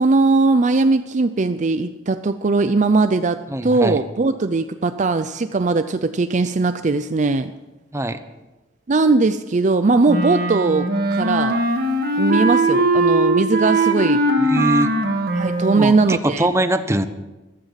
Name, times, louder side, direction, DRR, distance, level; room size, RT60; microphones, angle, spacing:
voice 1, 0.0-7.5 8.9-11.6 12.2-14.2 15.3-16.5, right 3 dB, 40° right, 10 dB, 0.5 m, -19 dB
voice 2, 3.5-4.0 7.9-8.2 14.4-14.9 15.8-17.1, right 1 dB, 15° right, 10 dB, 0.9 m, -22 dB
Wind instrument woodwind instrument, 10.1-16.0, right 2 dB, 60° right, 1.7 m, -20 dB
14.5 x 13.5 x 5.8 m, 1.1 s
head